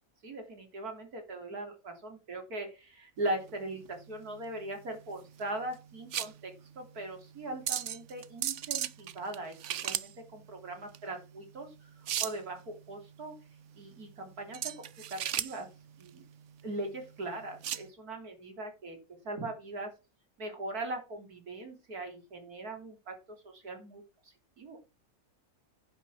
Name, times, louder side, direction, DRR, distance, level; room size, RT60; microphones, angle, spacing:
voice 1, 0.2-9.6 9.8-11.9 12.2-13.3 13.8-14.7 15.1-15.7 16.0-16.2 16.6-19.0 19.2-19.9 20.4-24.0 24.6-24.8, right 2 dB, 90° right, 3 dB, 3.8 m, -40 dB
sound 1, 3.2-17.9, right 10 dB, 60° right, 0.9 m, -38 dB
10.0 x 6.1 x 7.3 m, 0.29 s
omnidirectional pair, 1.5 m